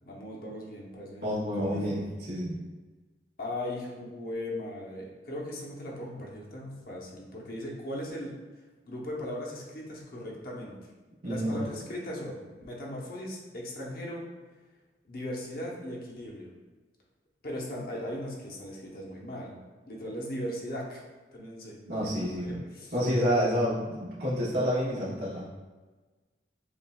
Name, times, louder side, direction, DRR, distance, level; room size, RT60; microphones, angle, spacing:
voice 1, 0.0-1.3 1.6-1.9 3.4-8.4 8.8-10.7 11.2-14.2 15.0-16.5 17.4-21.0 21.3-21.8 22.2-22.9, left 1 dB, 55° left, -3 dB, 0.9 m, -38 dB
voice 2, 1.2-2.6 11.2-11.6 21.9-22.5 22.9-25.5, equal, 70° right, -8 dB, 1.1 m, -29 dB
7.1 x 2.5 x 2.3 m, 1.3 s
head